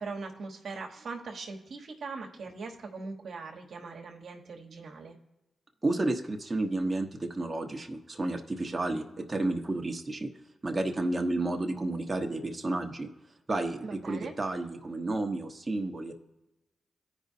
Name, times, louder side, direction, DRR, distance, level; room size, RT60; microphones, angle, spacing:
voice 1, 0.0-5.2 13.8-14.3, right 4 dB, 70° right, 1 dB, 1.2 m, -40 dB
voice 2, 5.8-10.3 10.6-13.1 13.5-16.1, right 2 dB, 30° right, 2 dB, 1.1 m, -31 dB
14.5 x 5.2 x 2.7 m, 0.96 s
cardioid pair, 55°, 0 cm